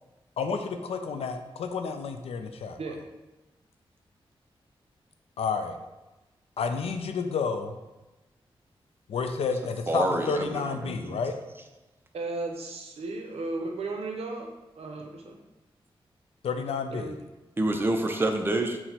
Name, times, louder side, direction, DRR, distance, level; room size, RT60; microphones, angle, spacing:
voice 1, 0.4-2.8 5.4-5.8 6.6-7.8 9.1-11.4 16.4-17.1, left 5 dB, 80° left, 7 dB, 0.3 m, -30 dB
voice 2, 9.9-11.2 17.6-18.8, right 2 dB, 20° right, 5 dB, 0.4 m, -27 dB
voice 3, 12.1-14.5 14.8-15.4 16.9-17.2, right 3 dB, 85° right, 3 dB, 0.5 m, -35 dB
6.0 x 2.0 x 2.8 m, 1.1 s
wide cardioid pair, 115°, 10 cm